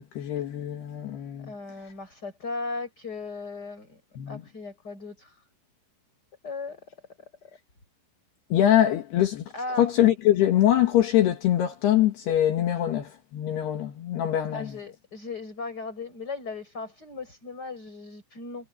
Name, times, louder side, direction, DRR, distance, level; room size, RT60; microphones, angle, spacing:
voice 1, 0.0-1.5 4.2-4.4 8.5-9.4 9.8-14.7, left 12 dB, 65° left, 3.4 m, -23 dB
voice 2, 1.4-4.0 4.3-5.4 6.4-6.9 7.4-7.5 9.5-9.9 14.5-18.7, left 3 dB, 20° left, 6.9 m, -37 dB
omnidirectional pair, 5.5 m